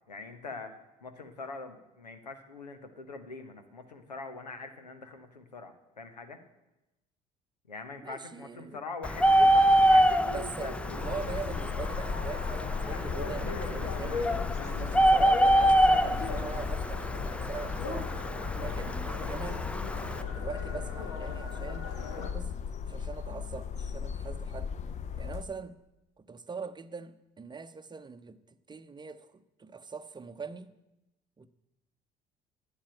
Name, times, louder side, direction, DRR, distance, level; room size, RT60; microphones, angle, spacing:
voice 1, 0.1-0.7 1.0-6.4 7.7-10.7, left 3 dB, 85° left, 1.1 m, -43 dB
voice 2, 8.0-8.8 10.3-14.2 14.8-18.1 18.6-19.6 20.0-22.6 22.9-24.7 25.2-25.7 26.2-28.4 28.7-30.7 31.4-31.5, right 5 dB, 20° right, 0.8 m, -42 dB
Bird, 9.0-20.2, right 1 dB, 5° left, 0.5 m, -26 dB
sound 1, 10.6-22.3, left 4 dB, 60° left, 1.6 m, -40 dB
sound 2, 11.0-25.4, left 6 dB, 35° left, 0.8 m, -37 dB
11.5 x 8.8 x 8.8 m
figure-of-eight pair, 55°, 21 cm